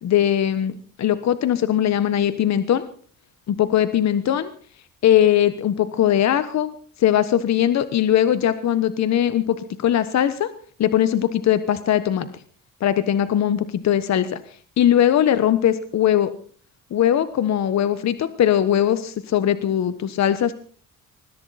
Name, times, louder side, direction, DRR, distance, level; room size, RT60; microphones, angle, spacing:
voice 1, 0.0-2.8 3.6-4.5 5.0-10.5 10.8-12.3 12.8-14.4 14.8-16.3 16.9-20.5, left 10 dB, 65° left, 12 dB, 1.2 m, -20 dB
21.0 x 13.5 x 4.2 m, 0.43 s
cardioid pair, 90°, 30 cm